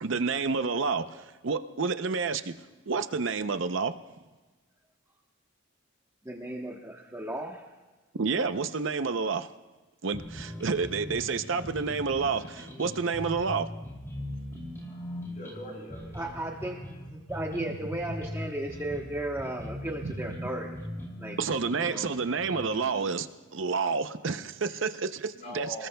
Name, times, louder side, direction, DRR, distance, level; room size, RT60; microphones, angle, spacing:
voice 1, 0.0-2.5 2.9-3.9 8.1-9.5 10.0-13.7 21.4-23.3 23.5-25.9, right 4 dB, 65° right, 10 dB, 0.6 m, -29 dB
voice 2, 6.2-7.6 16.1-20.8 21.2-21.4 21.8-22.1, right 1 dB, 15° right, 0 dB, 1.0 m, -35 dB
sound 1, 10.1-23.1, left 1 dB, 15° left, 2.6 m, -40 dB
voice 3, 14.5-16.2 24.7-24.8 25.3-25.9, equal, 40° left, -3 dB, 6.6 m, -43 dB
28.5 x 19.5 x 2.3 m, 1.3 s
head